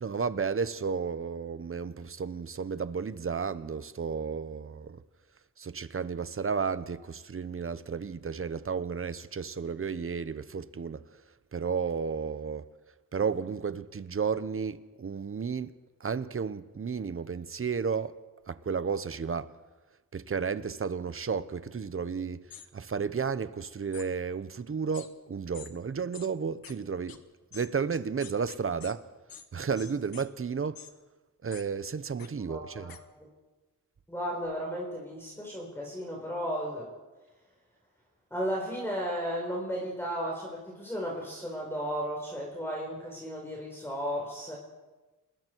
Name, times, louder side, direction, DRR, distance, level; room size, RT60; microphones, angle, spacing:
voice 1, 0.0-5.0 5.6-11.0 11.5-12.7 13.1-15.7 16.0-18.1 18.5-19.5 20.1-27.2 27.5-29.0 29.5-30.8 31.4-33.0, right 5 dB, 40° right, 1.0 m, -33 dB
sound 1, 22.5-22.7 23.9-24.1 24.9-25.1 25.5-25.7 26.1-26.3 26.6-26.7 27.1-27.2 27.5-28.9 29.3-29.5 29.8-30.3 30.7-30.9 31.5-31.6 32.2-32.3 32.9-33.0, left 8 dB, 75° left, 1.4 m, -47 dB
voice 2, 32.5-33.3 34.1-36.9 38.3-44.6, equal, 5° left, 4.7 m, -34 dB
28.0 x 20.5 x 4.7 m
wide cardioid pair, 95°, 35 cm